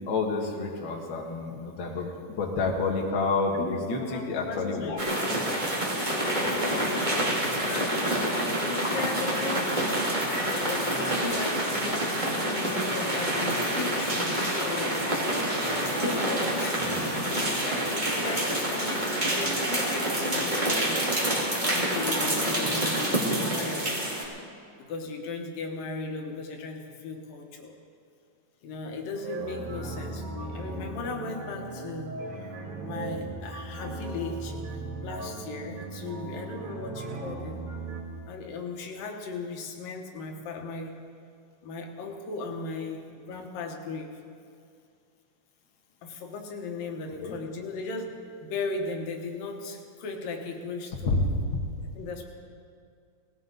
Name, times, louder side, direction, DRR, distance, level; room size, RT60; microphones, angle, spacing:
voice 1, 0.0-5.0 16.8-17.3 47.2-47.3, left 3 dB, 45° left, 0 dB, 2.0 m, -30 dB
voice 2, 3.5-5.6 6.1-9.7 10.6-15.0 15.9-17.2 17.6-21.1 21.6-24.0 24.9-27.8 28.6-32.2 32.8-37.6 38.3-41.0 41.6-44.2 46.0-51.2 52.0-52.2, left 3 dB, 90° left, 2 dB, 3.0 m, -37 dB
sound 1, 5.0-24.2, right 1 dB, 15° right, 2.2 m, -27 dB
sound 2, 29.1-38.0, right 3 dB, 65° right, 3.0 m, -37 dB
18.5 x 16.5 x 4.0 m, 2.4 s
omnidirectional pair, 3.8 m